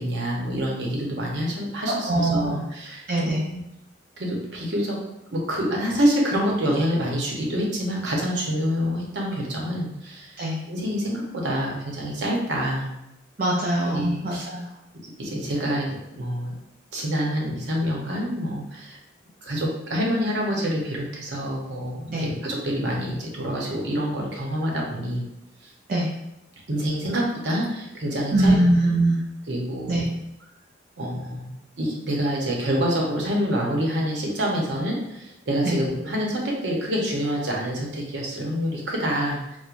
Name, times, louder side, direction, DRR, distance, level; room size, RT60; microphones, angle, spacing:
voice 1, 0.0-3.6 4.2-5.0 5.3-10.4 10.7-12.9 13.9-14.5 15.2-16.5 16.9-19.0 19.4-25.3 26.7-28.6 29.5-30.0 31.0-39.4, equal, 65° right, -2 dB, 0.8 m, -27 dB
voice 2, 1.9-2.6 3.1-3.4 10.4-10.6 13.4-14.7 22.1-22.3 25.9-26.1 28.3-29.2 29.9-30.1 35.6-35.8, right 1 dB, 45° right, -4 dB, 0.4 m, -22 dB
4.4 x 2.1 x 2.5 m, 0.87 s
head